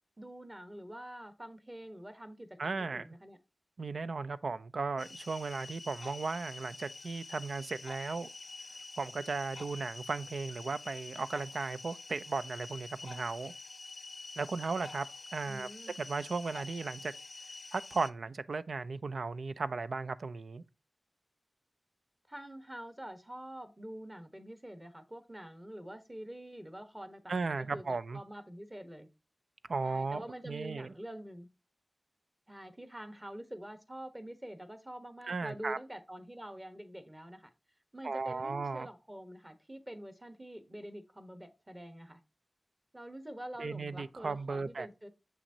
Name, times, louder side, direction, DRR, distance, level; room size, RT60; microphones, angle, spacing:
voice 1, 0.2-3.4 15.5-15.9 22.3-29.1 29.8-31.5 32.5-37.5 37.9-42.2 42.9-45.1, right 1 dB, 20° right, 1.0 m, -46 dB
voice 2, 2.6-3.1 3.8-8.3 9.0-13.5 14.4-15.1 15.3-15.7 16.0-17.1 17.7-20.6 27.3-28.2 29.7-30.9 35.3-35.8 38.0-38.9 43.6-44.9, right 4 dB, 85° right, 0.4 m, -36 dB
sound 1, 5.0-18.1, left 3 dB, 55° left, 0.5 m, -47 dB
6.9 x 5.9 x 2.7 m
wide cardioid pair, 90°, 0 cm